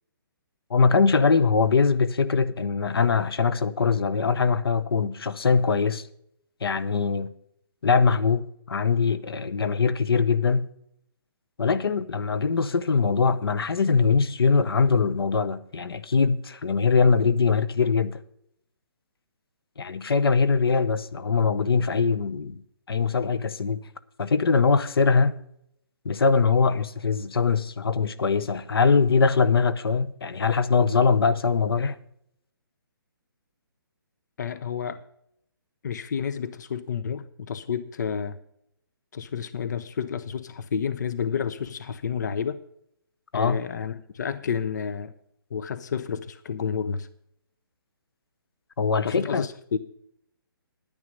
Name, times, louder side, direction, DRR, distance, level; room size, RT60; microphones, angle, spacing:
voice 1, 0.7-6.0 6.6-7.3 7.8-10.7 11.6-18.2 19.8-22.6 22.9-23.8 24.2-25.4 26.0-32.0 43.3-43.6 48.8-49.5, left 5 dB, 80° left, 0.9 m, -22 dB
voice 2, 34.4-35.0 35.8-38.4 39.1-42.6 43.3-45.1 45.5-47.1 49.0-49.8, left 7 dB, 50° left, 0.6 m, -30 dB
10.5 x 9.8 x 5.2 m
hypercardioid pair, 170°, 12 cm